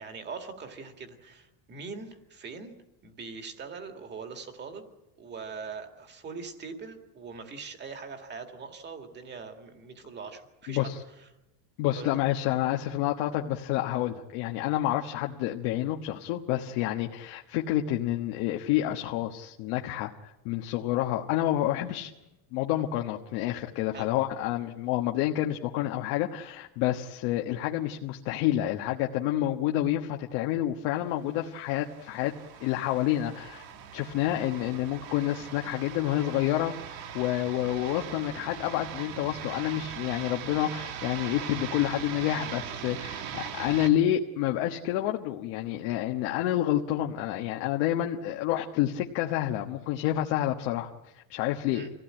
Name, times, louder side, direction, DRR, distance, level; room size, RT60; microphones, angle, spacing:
voice 1, 0.0-2.7 3.0-4.9 5.2-10.9 11.2-11.3 12.0-12.1 23.9-24.1 51.7-51.9, right 5 dB, 20° right, 6 dB, 2.1 m, -42 dB
voice 2, 10.7-11.0 11.8-20.1 20.4-22.1 22.5-32.3 32.6-33.6 33.9-51.9, left 13 dB, 60° left, 2 dB, 1.4 m, -29 dB
sound 1, 31.3-43.9, right 8 dB, 90° right, 2.5 m, -40 dB
25.0 x 16.5 x 8.8 m, 0.98 s
cardioid pair, 180°, 50 cm